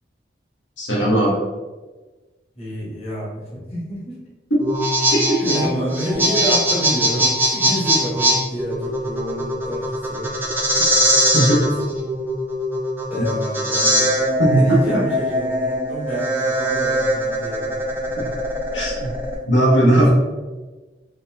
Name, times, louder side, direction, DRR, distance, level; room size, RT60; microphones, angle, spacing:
voice 1, 0.8-1.4 5.1-5.4 10.8-10.9 11.3-11.6 14.4-14.8 18.7-19.1 19.4-20.1, right 1 dB, 85° left, -5 dB, 1.1 m, -17 dB
voice 2, 2.6-4.2 5.4-10.3 11.4-11.7 13.1-14.1 14.5-17.8 20.0-20.1, equal, 35° left, -7 dB, 1.2 m, -28 dB
sound 1, 4.6-19.4, right 1 dB, 10° right, 0.4 m, -21 dB
3.8 x 2.6 x 2.7 m, 1.2 s
head